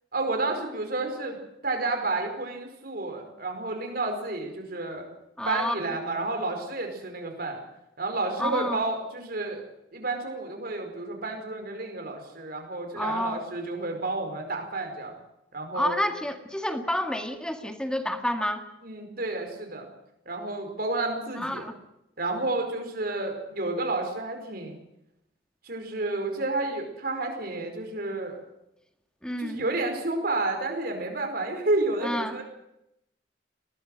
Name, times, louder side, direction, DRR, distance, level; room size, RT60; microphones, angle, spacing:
voice 1, 0.1-1.4 1.6-5.0 5.4-7.6 8.0-9.6 9.9-15.1 15.5-16.0 18.8-19.9 20.2-21.7 22.2-24.8 25.6-28.4 29.4-32.4, right 2 dB, 55° right, 4 dB, 5.1 m, -30 dB
voice 2, 5.4-5.8 8.4-8.8 13.0-13.4 15.7-18.6 21.4-21.7 29.2-29.6 32.0-32.4, left 1 dB, 5° left, 6 dB, 1.9 m, -29 dB
21.0 x 18.0 x 8.0 m, 0.85 s
head